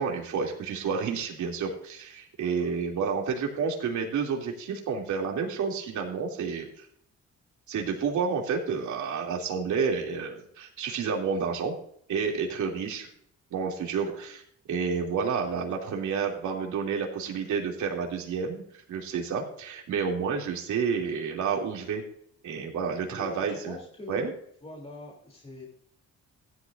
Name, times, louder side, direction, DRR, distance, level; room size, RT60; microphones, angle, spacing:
voice 1, 0.0-6.9 7.7-11.7 12.1-13.1 13.5-14.4 14.7-22.0 22.4-23.8 24.1-24.3, right 5 dB, 75° right, 1 dB, 2.8 m, -30 dB
voice 2, 23.2-24.3 24.6-25.7, left 2 dB, 20° left, -1 dB, 3.1 m, -42 dB
16.0 x 11.5 x 2.6 m, 0.67 s
cardioid pair, 90°, 30 cm